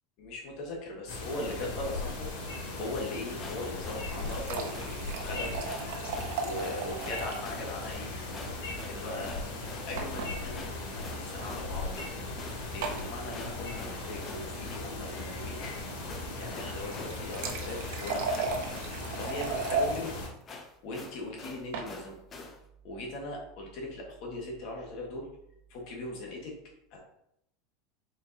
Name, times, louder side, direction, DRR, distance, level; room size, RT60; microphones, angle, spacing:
voice 1, 0.2-2.3 2.8-5.6 6.4-8.1 8.4-12.0 12.7-15.6 16.1-18.6 19.1-20.2 20.6-22.2 22.8-25.3 25.7-26.5 26.9-27.0, left 2 dB, 45° left, -1 dB, 1.2 m, -39 dB
sound 1, 1.1-20.3, left 2 dB, 90° left, 1.7 m, -38 dB
sound 2, 2.9-22.6, left 3 dB, 20° left, 0.5 m, -47 dB
sound 3, 3.8-7.5 7.8-7.9 8.2-8.3 10.0-10.3 11.3-11.5 12.8-13.1 16.8-20.0 21.4-21.9, right 4 dB, 65° right, 0.7 m, -35 dB
4.4 x 4.3 x 2.6 m, 0.79 s
supercardioid pair, 180°, 0 cm